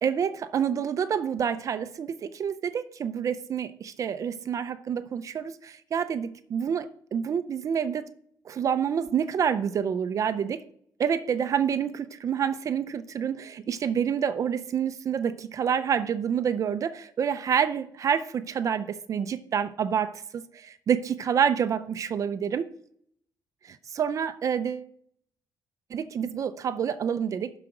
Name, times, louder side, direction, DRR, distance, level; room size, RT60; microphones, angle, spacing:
voice 1, 0.0-8.0 8.5-10.6 11.0-22.7 23.6-24.9 25.9-27.5, right 8 dB, 45° right, 11 dB, 0.5 m, -28 dB
12.0 x 4.9 x 4.9 m, 0.64 s
cardioid pair, 155°, 8 cm